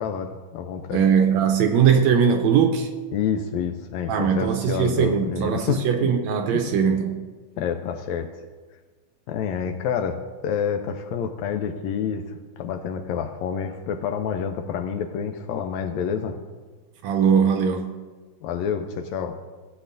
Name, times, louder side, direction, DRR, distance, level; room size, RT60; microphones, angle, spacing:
voice 1, 0.0-1.0 3.1-5.8 7.6-8.3 9.3-10.2 10.4-16.4 18.4-19.3, left 7 dB, 80° left, 5 dB, 1.7 m, -28 dB
voice 2, 0.9-2.9 4.1-7.2 17.0-17.9, right 7 dB, 75° right, 5 dB, 1.7 m, -20 dB
16.5 x 8.1 x 2.6 m, 1.4 s
omnidirectional pair, 3.5 m